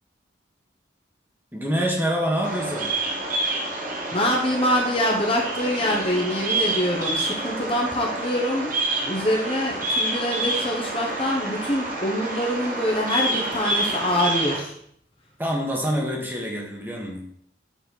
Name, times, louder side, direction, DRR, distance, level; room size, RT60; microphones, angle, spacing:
voice 1, 1.5-2.9 15.4-17.2, equal, 10° right, -2 dB, 1.3 m, -26 dB
Bird vocalization bird call bird song, 2.4-14.6, right 2 dB, 45° right, 1.2 m, -28 dB
voice 2, 4.1-8.8 9.0-14.8, equal, 30° left, 0 dB, 0.9 m, -25 dB
7.1 x 4.1 x 4.0 m, 0.68 s
head